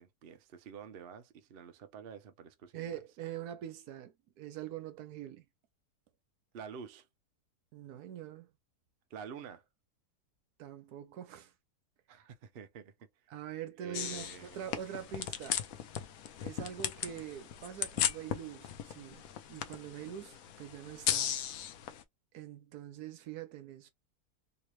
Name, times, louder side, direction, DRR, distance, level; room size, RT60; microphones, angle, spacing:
voice 1, 0.0-3.0 6.5-7.1 9.1-9.6 12.1-12.9 13.8-14.6, right 6 dB, 55° right, 0.6 m, -48 dB
voice 2, 2.7-5.5 7.7-8.5 10.6-11.5 13.3-15.6 16.4-21.4 22.3-23.9, right 10 dB, 75° right, 1.2 m, -44 dB
sound 1, 13.9-22.0, left 10 dB, 70° left, 1.0 m, -37 dB
3.2 x 2.8 x 3.1 m
omnidirectional pair, 1.7 m